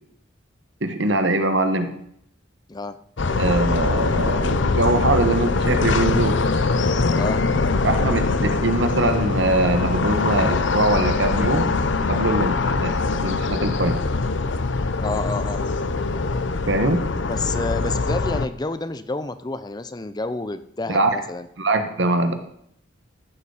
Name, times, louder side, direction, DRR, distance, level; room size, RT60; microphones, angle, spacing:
voice 1, 0.8-1.9 3.3-6.4 7.8-11.7 12.1-14.0 16.7-17.1 20.9-21.1 21.6-22.3, right 2 dB, 65° right, 7 dB, 1.3 m, -22 dB
sound 1, 3.2-18.5, left 3 dB, 65° left, 0.7 m, -22 dB
voice 2, 15.0-15.6 17.3-21.5, left 3 dB, 20° left, 12 dB, 0.5 m, -29 dB
14.5 x 6.9 x 4.9 m, 0.70 s
head